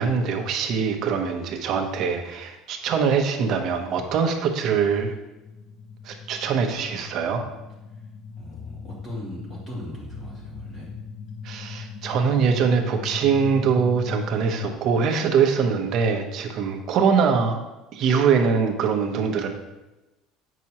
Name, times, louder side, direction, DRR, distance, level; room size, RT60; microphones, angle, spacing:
voice 1, 0.0-5.1 6.0-7.4 11.4-17.6 17.9-19.5, right 6 dB, 45° right, 3 dB, 0.9 m, -23 dB
sound 1, 5.4-14.7, left 5 dB, 45° left, 0.6 m, -38 dB
voice 2, 8.4-10.9, equal, 25° left, -5 dB, 2.2 m, -38 dB
8.4 x 6.0 x 2.9 m, 1.0 s
cardioid pair, 165°, 0 cm